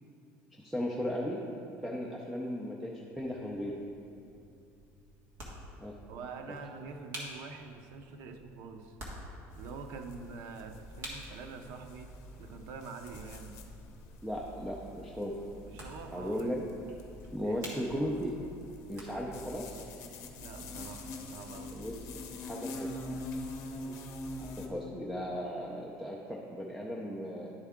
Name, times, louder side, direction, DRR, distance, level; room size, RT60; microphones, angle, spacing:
voice 1, 0.6-1.4 1.8-3.8 5.8-6.0 14.2-15.3 16.1-16.6 17.3-18.4 18.9-19.8 21.7-22.0 22.4-22.9 24.4-27.5, equal, 5° right, -2 dB, 0.4 m, -36 dB
sound 1, 3.1-19.5, equal, 40° right, 1.5 m, -51 dB
voice 2, 6.1-9.0 9.6-12.1 12.4-13.6 15.6-16.5 17.4-17.9 20.4-21.8, right 4 dB, 75° right, 5 dB, 0.6 m, -46 dB
sound 2, 9.5-24.7, left 1 dB, 50° left, 0.7 m, -45 dB
11.0 x 4.5 x 3.6 m, 2.6 s
cardioid pair, 170°, 6 cm